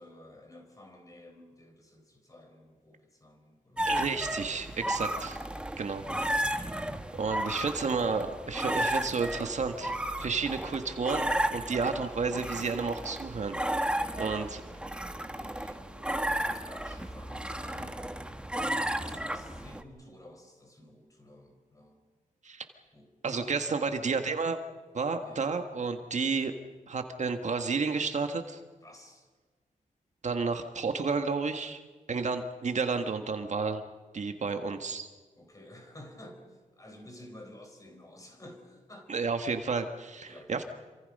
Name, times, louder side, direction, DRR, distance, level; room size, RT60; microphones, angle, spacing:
voice 1, 0.0-3.9 4.8-5.1 14.0-14.6 15.3-18.1 18.7-22.0 22.9-23.1 23.8-24.3 25.2-25.4 28.8-29.3 34.4-34.9 35.4-39.1 40.3-40.6, left 1 dB, 25° left, 4 dB, 4.6 m, -52 dB
sound 1, 3.8-19.8, right 1 dB, 5° right, 1.3 m, -33 dB
voice 2, 3.8-5.4 5.8-6.0 6.5-6.7 7.1-13.6 14.2-14.6 22.4-22.6 23.2-24.6 24.9-26.5 26.9-28.6 30.2-31.8 32.1-33.8 34.1-35.1 39.1-40.6, right 4 dB, 55° right, 7 dB, 1.6 m, -31 dB
27.5 x 25.5 x 5.4 m, 1.3 s
wide cardioid pair, 105°, 14 cm